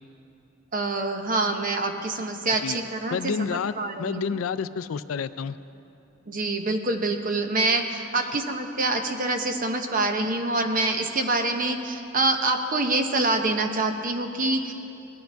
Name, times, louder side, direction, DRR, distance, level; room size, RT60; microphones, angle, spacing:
voice 1, 0.7-4.3 6.3-14.7, right 2 dB, 40° right, 5 dB, 0.9 m, -26 dB
voice 2, 3.1-5.6, left 6 dB, 80° left, 14 dB, 0.4 m, -29 dB
19.0 x 11.5 x 3.5 m, 2.9 s
head